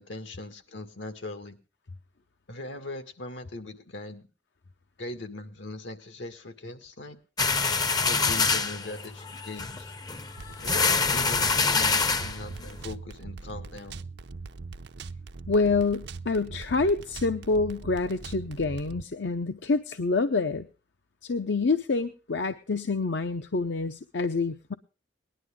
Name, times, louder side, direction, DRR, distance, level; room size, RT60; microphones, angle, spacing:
voice 1, 0.0-1.6 2.5-4.3 5.0-7.2 7.9-9.9 10.6-14.0, left 2 dB, 85° left, 8 dB, 1.9 m, -40 dB
sound 1, 7.4-12.9, left 4 dB, 20° left, 0.6 m, -26 dB
sound 2, 10.4-19.0, right 4 dB, 65° right, 0.6 m, -41 dB
voice 2, 15.5-20.7 21.2-24.7, left 3 dB, 70° left, 9 dB, 0.7 m, -27 dB
19.0 x 11.0 x 3.7 m, 0.34 s
head